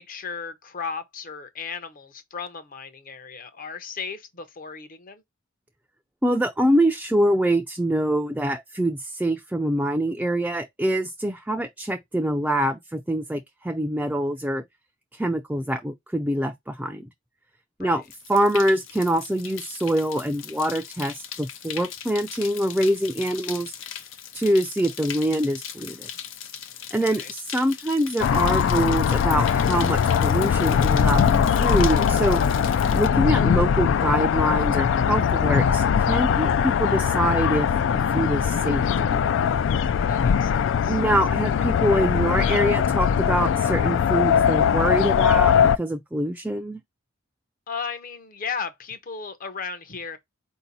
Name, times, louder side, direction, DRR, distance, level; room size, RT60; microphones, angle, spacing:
voice 1, 0.0-5.2 17.8-18.0 27.0-27.3 40.1-41.0 47.7-50.2, left 5 dB, 45° left, 0.7 m, -35 dB
voice 2, 6.2-14.6 15.1-17.1 17.8-18.0 18.3-23.7 24.3-26.1 26.9-32.4 32.9-39.3 40.9-46.8, right 1 dB, 5° right, 0.4 m, -25 dB
sound 1, 18.0-33.1, left 9 dB, 85° left, 0.7 m, -39 dB
sound 2, 28.2-45.8, left 7 dB, 65° left, 0.3 m, -21 dB
4.4 x 2.8 x 4.0 m
head